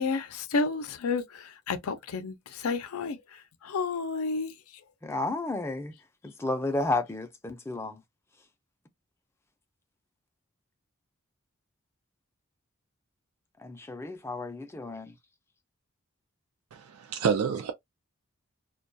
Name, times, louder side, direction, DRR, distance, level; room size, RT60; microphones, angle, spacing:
voice 1, 0.0-4.5, left 4 dB, 85° left, 0.5 m, -31 dB
voice 2, 5.0-5.9 6.2-8.0 13.6-15.0, left 2 dB, 10° left, 0.4 m, -32 dB
voice 3, 16.7-17.7, right 6 dB, 90° right, 0.4 m, -28 dB
2.2 x 2.2 x 2.6 m
head